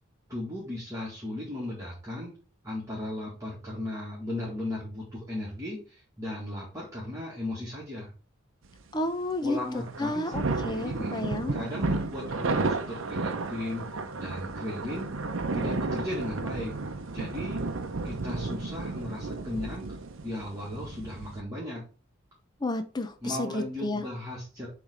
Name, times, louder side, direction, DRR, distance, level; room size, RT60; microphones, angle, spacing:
voice 1, 0.3-2.3 2.6-8.1 9.4-13.9 14.2-15.1 15.5-16.7 17.1-17.6 18.0-19.9 20.2-21.8 23.2-24.7, left 1 dB, 15° right, -6 dB, 1.8 m, -36 dB
voice 2, 8.9-9.6 10.0-11.5 22.6-24.0, left 2 dB, 20° left, 8 dB, 0.6 m, -31 dB
sound 1, 9.8-21.4, right 3 dB, 65° right, 0.8 m, -33 dB
7.0 x 3.3 x 4.9 m, 0.36 s
head